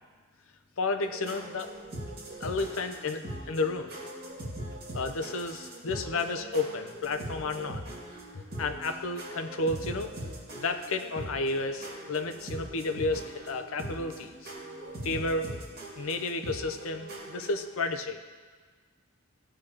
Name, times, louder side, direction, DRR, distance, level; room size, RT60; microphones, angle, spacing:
voice 1, 0.8-1.7 2.4-3.9 4.9-7.8 8.3-10.1 10.5-14.5 15.0-15.5 16.0-18.2, left 3 dB, 65° left, 7 dB, 0.6 m, -32 dB
sound 1, 1.0-17.6, right 1 dB, 45° right, 2.1 m, -41 dB
15.0 x 6.4 x 2.9 m, 1.5 s
head